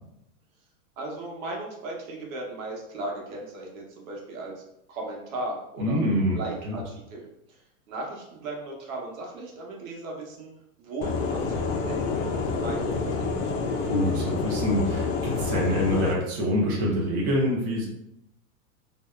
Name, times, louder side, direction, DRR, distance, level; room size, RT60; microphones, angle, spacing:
voice 1, 1.0-4.5 4.9-6.0 6.3-7.6 7.9-10.5 10.8-13.4, right 2 dB, 70° right, -1 dB, 0.9 m, -36 dB
voice 2, 5.8-6.4 6.6-6.8 13.8-17.9, equal, 30° right, -4 dB, 0.5 m, -25 dB
sound 1, 11.0-16.1, left 4 dB, 60° left, 0.5 m, -28 dB
2.7 x 2.1 x 2.2 m, 0.83 s
supercardioid pair, 160°, 42 cm